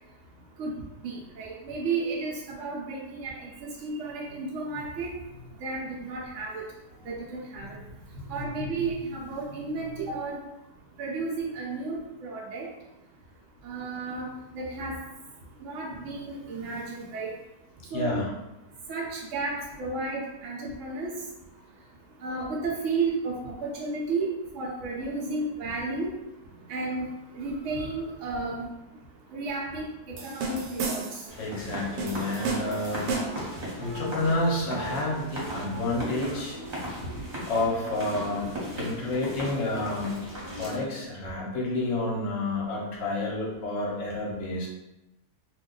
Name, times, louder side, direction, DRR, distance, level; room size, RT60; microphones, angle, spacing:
voice 1, 1.0-5.1 5.6-6.6 7.1-7.8 8.3-10.4 11.0-12.7 13.6-14.3 14.5-15.0 15.6-17.3 17.9-18.2 18.9-21.1 22.2-24.3 24.5-26.1 26.7-27.1 27.3-28.7 29.3-31.2 33.3-33.4 33.8-34.1 34.4-34.5 34.7-34.9 35.7-35.8, right 3 dB, 70° right, -3 dB, 0.7 m, -33 dB
voice 2, 17.9-18.3 31.4-36.6 37.5-38.5 38.7-44.7, left 2 dB, 60° left, -3 dB, 1.0 m, -30 dB
sound 1, 30.2-31.3 32.0-33.5, right 3 dB, 85° right, 1.2 m, -32 dB
sound 2, 31.3-40.8, equal, 35° right, 0.9 m, -37 dB
2.6 x 2.2 x 3.7 m, 0.97 s
omnidirectional pair, 1.8 m